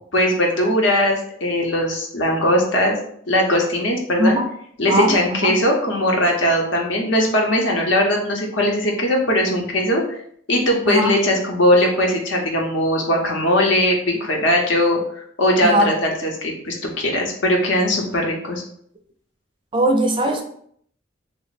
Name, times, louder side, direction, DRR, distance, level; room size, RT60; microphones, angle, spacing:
voice 1, 0.1-2.9 3.3-4.4 4.8-10.0 10.5-15.0 15.4-18.6, left 1 dB, 70° left, 0 dB, 0.8 m, -19 dB
voice 2, 4.9-5.6 10.9-11.1 15.6-15.9 19.7-20.4, right 1 dB, 25° right, 3 dB, 0.4 m, -19 dB
3.0 x 2.0 x 4.0 m, 0.64 s
head